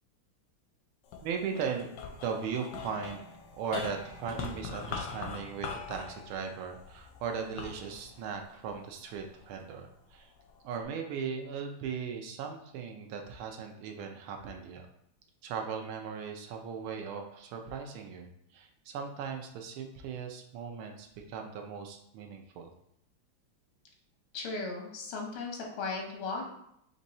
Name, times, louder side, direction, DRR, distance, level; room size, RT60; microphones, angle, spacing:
sound 1, 1.0-9.5 10.1-10.8, left 5 dB, 75° left, 1.0 m, -43 dB
voice 1, 1.2-1.9 2.2-3.2 3.5-10.3 10.6-14.9 15.4-22.7, right 6 dB, 85° right, 3 dB, 1.5 m, -38 dB
voice 2, 24.3-26.5, left 3 dB, 90° left, 1 dB, 1.7 m, -36 dB
4.5 x 2.7 x 4.1 m, 0.73 s
omnidirectional pair, 2.3 m